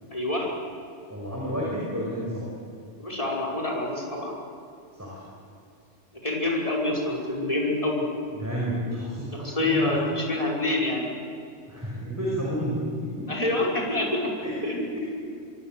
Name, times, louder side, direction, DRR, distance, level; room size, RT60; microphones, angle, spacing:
voice 1, 0.1-0.5 3.0-4.3 6.2-8.1 9.3-11.1 13.3-14.2 14.6-14.9, left 2 dB, 30° left, -1 dB, 5.6 m, -27 dB
voice 2, 1.1-2.5 4.9-5.2 8.3-10.0 11.6-13.3 14.4-15.0, equal, 15° right, -5 dB, 6.1 m, -31 dB
26.5 x 23.0 x 7.9 m, 2.5 s
omnidirectional pair, 1.2 m